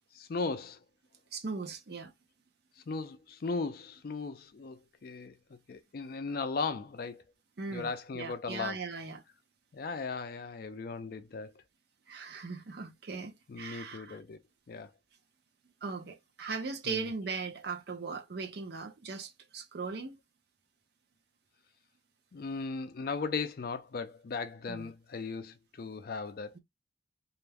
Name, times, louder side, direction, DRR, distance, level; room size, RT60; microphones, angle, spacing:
voice 1, 0.1-0.8 2.9-7.2 7.7-8.8 9.7-11.5 13.5-14.4 14.7-14.9 16.9-17.1 22.3-26.6, left 4 dB, 50° left, 0.4 m, -37 dB
voice 2, 1.3-2.1 7.6-9.2 12.1-14.2 15.8-20.2 24.7-24.9, right 4 dB, 55° right, 0.6 m, -39 dB
2.4 x 2.1 x 3.2 m
head